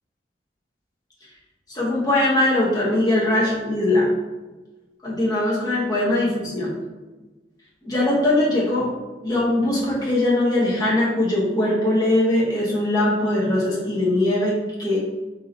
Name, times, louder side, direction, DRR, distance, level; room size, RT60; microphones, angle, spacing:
voice 1, 1.7-4.1 5.0-6.7 7.8-8.9 9.2-15.0, left 1 dB, 20° left, -6 dB, 0.9 m, -21 dB
4.2 x 2.8 x 3.9 m, 1.2 s
head